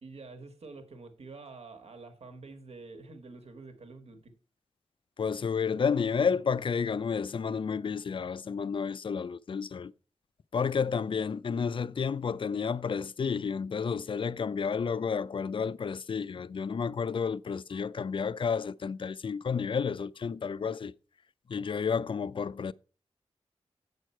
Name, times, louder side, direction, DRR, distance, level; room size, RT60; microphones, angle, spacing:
voice 1, 0.0-4.3, right 3 dB, 65° right, 1.4 m, -47 dB
voice 2, 5.2-9.9 10.5-20.9 21.5-22.7, left 6 dB, 50° left, 0.4 m, -31 dB
8.4 x 6.4 x 4.3 m
wide cardioid pair, 110°, 11 cm